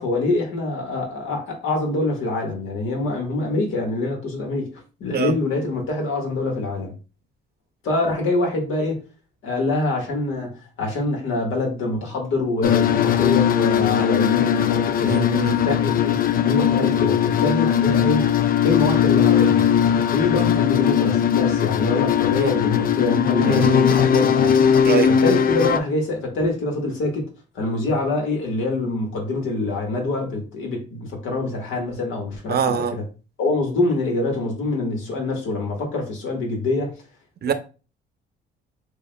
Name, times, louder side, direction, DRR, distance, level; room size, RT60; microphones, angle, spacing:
voice 1, 0.0-4.7 5.0-6.9 7.8-9.0 9.4-15.3 15.6-18.3 18.6-19.7 20.1-24.5 25.1-27.3 27.5-33.0 33.4-36.9, left 2 dB, 80° left, 1.5 m, -25 dB
sound 1, 12.6-25.8, left 9 dB, 50° left, 0.4 m, -19 dB
voice 2, 15.1-15.6 22.3-22.5 23.5-23.8 24.8-25.1 32.5-33.0 37.4-37.5, right 7 dB, 55° right, 0.7 m, -23 dB
7.0 x 2.4 x 2.2 m
cardioid pair, 90°, 20 cm